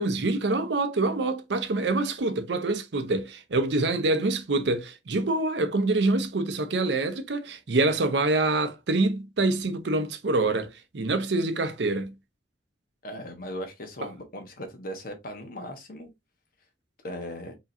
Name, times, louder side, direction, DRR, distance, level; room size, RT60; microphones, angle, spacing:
voice 1, 0.0-12.1, right 2 dB, 65° right, 0.7 m, -26 dB
voice 2, 13.0-16.1 17.0-17.5, equal, 50° left, 1.2 m, -38 dB
4.8 x 3.0 x 2.7 m
head